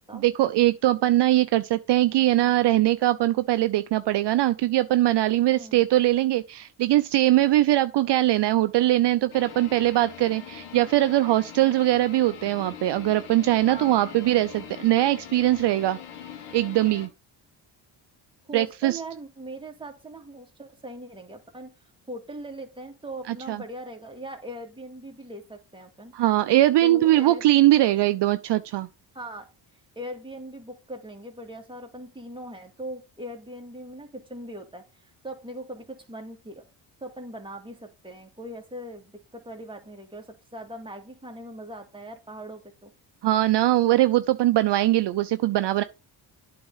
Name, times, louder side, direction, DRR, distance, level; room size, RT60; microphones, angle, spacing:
voice 1, 0.1-16.0 16.5-17.1 18.5-19.0 23.3-23.6 26.1-28.9 43.2-45.8, right 15 dB, 60° right, 0.6 m, -21 dB
voice 2, 2.2-2.5 5.5-5.8 13.7-14.4 18.5-21.7 22.1-26.1 26.8-27.4 29.1-29.5 30.0-36.6 37.0-42.9, right 1 dB, 10° right, 2.1 m, -40 dB
sound 1, 9.3-17.1, left 8 dB, 85° left, 1.4 m, -42 dB
8.6 x 3.7 x 5.5 m
supercardioid pair, 65°, 48 cm